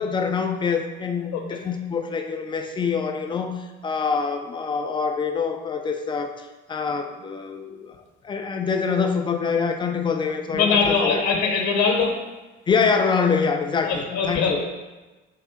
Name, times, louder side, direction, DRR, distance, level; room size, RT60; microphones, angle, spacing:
voice 1, 0.0-8.0 8.2-11.2 12.7-14.6, left 5 dB, 15° left, 5 dB, 0.3 m, -25 dB
voice 2, 10.5-12.1 13.9-14.7, left 5 dB, 50° left, 2 dB, 0.8 m, -21 dB
3.6 x 2.7 x 3.5 m, 1.2 s
hypercardioid pair, 65°, 34 cm